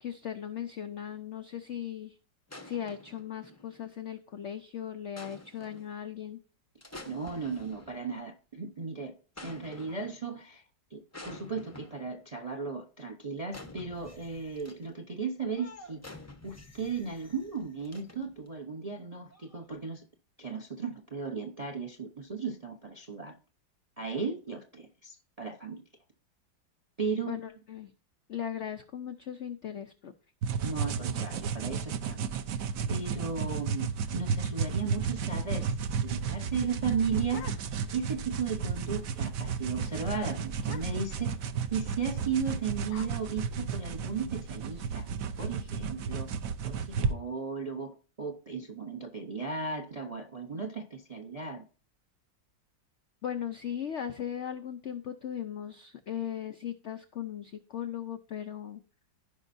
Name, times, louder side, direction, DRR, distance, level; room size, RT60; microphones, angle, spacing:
voice 1, 0.0-2.2 2.6-6.4 27.3-27.9 28.3-30.1 53.2-58.8, left 9 dB, 80° left, 0.6 m, -38 dB
sound 1, 2.5-3.9 5.2-6.0 6.8-8.2 9.4-10.3 11.1-12.2 13.5-14.9 15.5-18.5 19.3-19.7, left 2 dB, 20° left, 0.4 m, -49 dB
voice 2, 7.1-9.2 9.4-10.6 10.9-16.0 16.4-20.0 20.4-23.3 24.0-25.8 27.0-27.4 30.6-32.3 32.9-33.9 34.1-35.7 36.0-37.4 37.9-41.4 41.7-45.1 45.4-46.3 46.6-51.6, right 5 dB, 40° right, 0.5 m, -35 dB
sound 2, 30.4-47.1, right 6 dB, 65° right, 0.9 m, -33 dB
sound 3, 36.7-38.0 38.4-38.5 38.7-39.1 39.4-39.6 39.9-40.0 40.6-41.2 42.1-44.2, left 10 dB, 65° left, 1.0 m, -49 dB
15.5 x 5.4 x 2.6 m
omnidirectional pair, 2.0 m